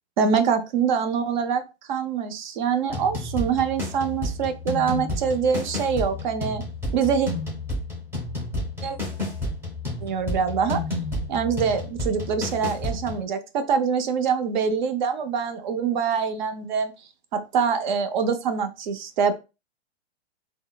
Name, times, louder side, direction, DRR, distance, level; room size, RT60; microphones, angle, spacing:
voice 1, 0.2-1.6 1.9-6.6 6.9-7.3 8.8-9.0 10.0-10.8 11.3-16.9 17.3-19.3, right 6 dB, 45° right, 0.5 m, -24 dB
sound 1, 2.9-13.2, left 1 dB, 5° right, 1.0 m, -31 dB
3.6 x 2.1 x 2.3 m
figure-of-eight pair, 110°, 34 cm